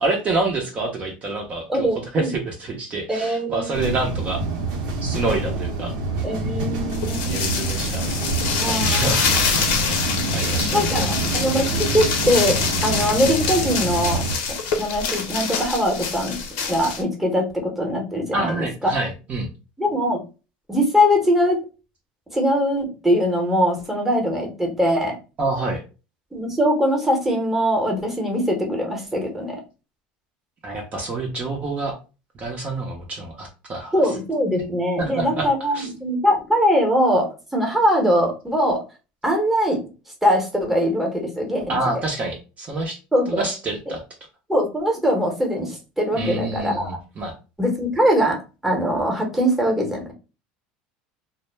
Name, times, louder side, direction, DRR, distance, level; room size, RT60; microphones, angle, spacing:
voice 1, 0.0-4.4 5.0-5.9 7.3-8.1 8.6-9.4 9.9-10.9 18.3-19.5 25.4-25.8 30.6-32.0 32.3-33.9 35.0-35.9 41.7-43.0 43.3-44.0 46.1-47.3, right 2 dB, 35° right, 1 dB, 0.6 m, -27 dB
voice 2, 1.7-2.3 3.1-4.0 6.2-7.4 8.6-9.2 10.7-12.6 12.8-14.2 14.5-16.4 16.7-18.9 19.8-20.2 20.7-21.6 22.3-25.2 26.3-29.6 33.9-38.8 39.2-39.8 40.2-41.8 43.1-43.5 44.5-47.0 47.6-48.4 48.6-50.1, equal, 5° right, 1 dB, 0.9 m, -22 dB
sound 1, 3.7-14.3, right 3 dB, 75° right, 0.8 m, -26 dB
sound 2, 6.9-17.0, left 5 dB, 70° left, 0.7 m, -25 dB
2.1 x 2.0 x 3.2 m, 0.31 s
supercardioid pair, 105°, 4 cm